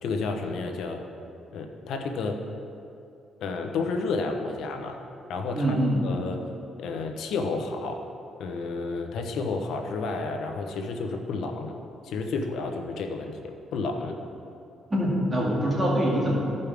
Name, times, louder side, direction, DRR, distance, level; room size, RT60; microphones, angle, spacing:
voice 1, 0.0-1.0 1.5-2.4 3.4-5.0 5.3-6.4 6.8-8.0 8.4-11.7 12.0-14.1, left 3 dB, 75° left, 4 dB, 0.9 m, -31 dB
voice 2, 5.5-6.1 14.9-16.5, equal, 30° right, -5 dB, 2.1 m, -24 dB
15.0 x 5.4 x 3.5 m, 2.7 s
cardioid pair, 90°, 0 cm